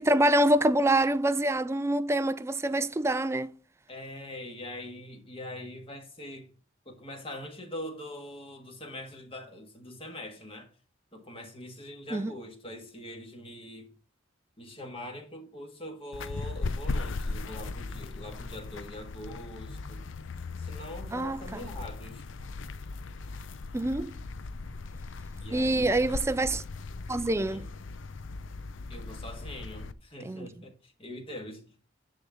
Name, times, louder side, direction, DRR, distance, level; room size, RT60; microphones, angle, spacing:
voice 1, 0.0-3.5 12.1-12.3 21.1-21.6 23.7-24.2 25.5-26.6 27.1-27.7 30.2-30.5, right 1 dB, 15° right, 0.4 m, -26 dB
voice 2, 3.9-6.5 6.8-10.7 11.1-13.9 14.6-20.0 20.6-22.2 25.4-26.2 27.4-27.6 28.9-31.7, left 1 dB, 30° left, 1.7 m, -43 dB
sound 1, 16.1-29.9, left 3 dB, 65° left, 0.6 m, -38 dB
10.0 x 3.9 x 7.0 m
head